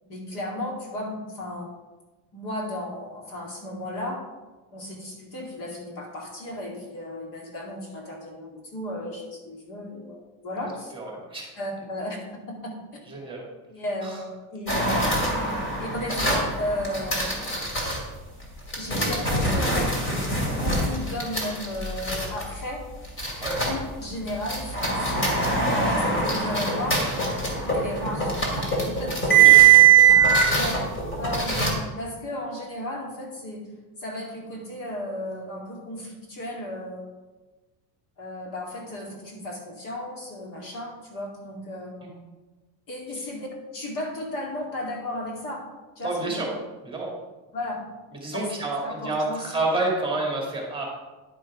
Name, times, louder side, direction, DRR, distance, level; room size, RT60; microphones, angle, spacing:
voice 1, 0.0-1.7 2.3-4.2 4.7-10.9 11.6-12.2 12.5-12.7 13.7-14.9 15.8-17.3 18.8-19.9 20.6-22.8 23.6-27.1 27.7-29.6 30.5-30.8 31.2-33.6 34.0-37.1 38.2-42.0 42.9-43.5 43.7-45.6 46.0-46.4 47.5-47.8 48.3-48.5 48.8-49.8, left 1 dB, 40° left, -1 dB, 2.5 m, -34 dB
voice 2, 10.6-11.5 13.1-13.4 14.0-14.1 23.4-23.6 29.4-29.7 42.0-42.1 46.0-46.5 46.8-47.1 48.2-50.8, right 2 dB, 10° right, -2 dB, 2.2 m, -29 dB
sound 1, 14.7-18.0 18.7-23.9 24.2-31.7, right 6 dB, 25° left, 2.6 m, -21 dB
10.5 x 6.3 x 5.0 m, 1.2 s
cardioid pair, 150°, 47 cm